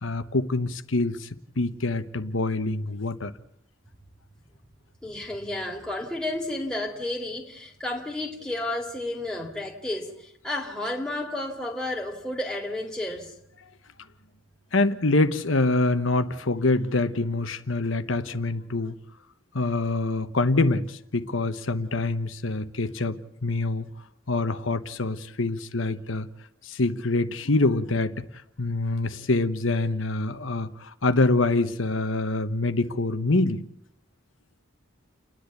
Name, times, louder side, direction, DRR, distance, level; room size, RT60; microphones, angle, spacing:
voice 1, 0.0-1.3 1.6-3.3 14.7-19.0 19.5-23.9 24.3-26.3 26.6-28.2 28.6-33.6, left 2 dB, 75° left, 1.1 m, -25 dB
voice 2, 5.0-13.3, left 1 dB, 5° left, 2.3 m, -32 dB
30.0 x 10.5 x 8.4 m
head